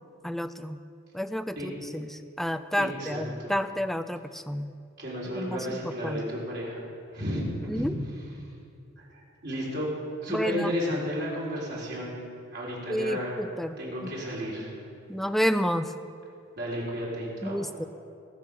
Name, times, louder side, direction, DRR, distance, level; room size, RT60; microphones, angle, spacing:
voice 1, 0.2-0.8 1.1-2.1 2.4-4.7 5.4-5.6 6.0-6.2 7.7-7.9 10.3-10.7 12.9-13.8 14.0-14.1 15.1-15.9 17.4-17.9, equal, ahead, 11 dB, 0.4 m, -30 dB
voice 2, 2.8-3.5 5.0-6.8 7.1-7.9 8.1-8.2 9.0-9.9 10.2-12.2 12.5-13.3 13.8-14.7 16.6-17.6, equal, 55° right, -5 dB, 4.0 m, -33 dB
20.0 x 7.2 x 6.2 m, 2.5 s
head